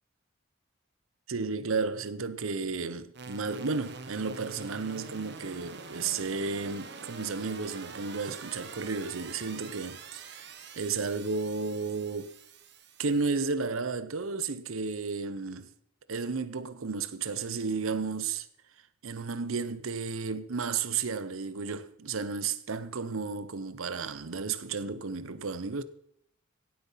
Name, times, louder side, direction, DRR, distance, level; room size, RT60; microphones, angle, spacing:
voice 1, 1.3-10.5 10.8-12.3 13.0-15.7 16.1-18.5 19.0-25.8, right 4 dB, 80° right, 0.8 m, -33 dB
sound 1, 3.1-13.4, right 4 dB, 55° right, 1.3 m, -46 dB
16.5 x 8.0 x 5.6 m
head